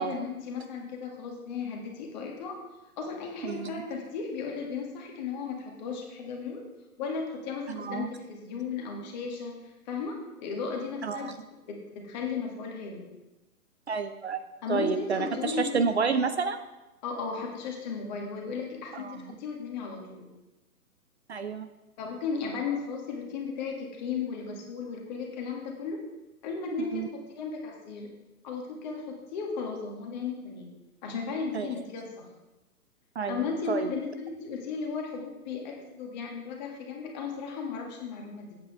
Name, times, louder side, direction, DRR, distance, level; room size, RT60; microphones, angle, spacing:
voice 1, 0.0-2.6 3.0-6.7 7.0-11.3 11.7-13.1 14.6-15.8 17.0-20.3 22.0-26.1 26.4-28.1 28.4-30.8 31.0-32.3 33.3-38.6, left 5 dB, 30° left, 0 dB, 2.0 m, -35 dB
voice 2, 3.4-3.7 7.7-8.1 11.0-11.3 13.9-14.4 14.7-16.6 18.9-19.2 21.3-21.7 26.8-27.1 31.5-31.7 33.2-33.9, right 5 dB, 45° right, 10 dB, 0.6 m, -30 dB
14.5 x 8.6 x 3.4 m, 1.0 s
figure-of-eight pair, 125°, 45 cm